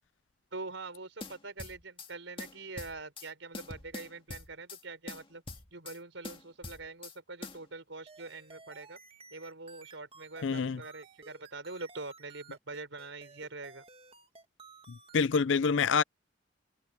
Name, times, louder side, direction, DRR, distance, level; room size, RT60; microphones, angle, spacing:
voice 1, 0.5-5.4 5.7-9.0 9.3-13.8, right 3 dB, 80° right, 4.9 m, -44 dB
sound 1, 1.2-2.1 2.4-3.3 3.5-4.8 5.1-6.0 6.2-7.2 7.4-7.6, left 3 dB, 30° left, 2.1 m, -44 dB
sound 2, 8.1-15.3, right 4 dB, 30° right, 1.7 m, -55 dB
voice 2, 10.4-10.8 14.9-16.0, left 5 dB, 75° left, 0.5 m, -27 dB
head